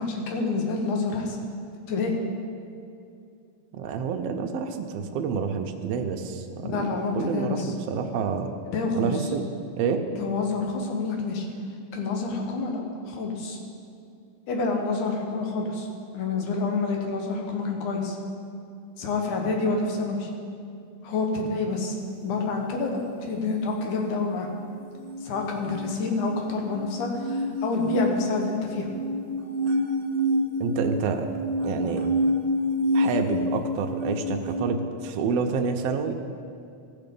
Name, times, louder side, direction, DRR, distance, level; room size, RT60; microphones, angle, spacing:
voice 1, 0.0-1.4 1.9-2.2 6.6-7.7 8.7-9.1 10.1-11.5 11.9-13.6 14.5-15.9 16.1-18.2 19.0-20.3 21.0-21.9 22.2-24.5 25.2-28.9, left 3 dB, 75° left, 2 dB, 2.6 m, -28 dB
voice 2, 3.7-8.5 9.0-9.4 9.8-10.0 30.6-31.3 31.6-32.0 32.9-36.1, right 5 dB, 80° right, 4 dB, 1.4 m, -28 dB
sound 1, 24.9-34.6, equal, 65° right, 1.4 m, -28 dB
14.5 x 6.2 x 5.3 m, 2.5 s
omnidirectional pair, 3.6 m